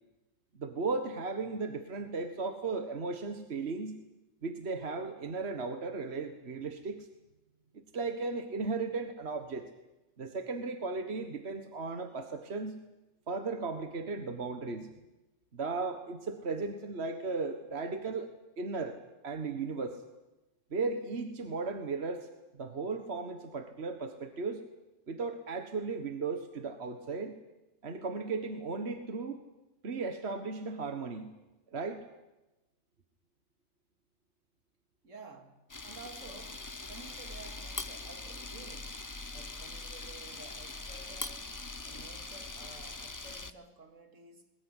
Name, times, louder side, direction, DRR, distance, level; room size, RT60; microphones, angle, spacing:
voice 1, 0.6-4.0 4.4-7.1 7.7-9.7 10.2-12.8 13.3-14.9 15.5-18.3 18.6-19.0 19.2-20.0 20.7-22.3 22.5-24.6 25.1-27.3 27.8-29.4 29.8-31.3 31.7-32.1, right 4 dB, 55° right, 1.7 m, -36 dB
voice 2, 35.0-39.0 39.3-44.5, right 3 dB, 80° right, 2.7 m, -52 dB
Camera, 35.7-43.5, left 3 dB, 20° left, 0.7 m, -42 dB
22.0 x 20.5 x 9.9 m
omnidirectional pair, 1.3 m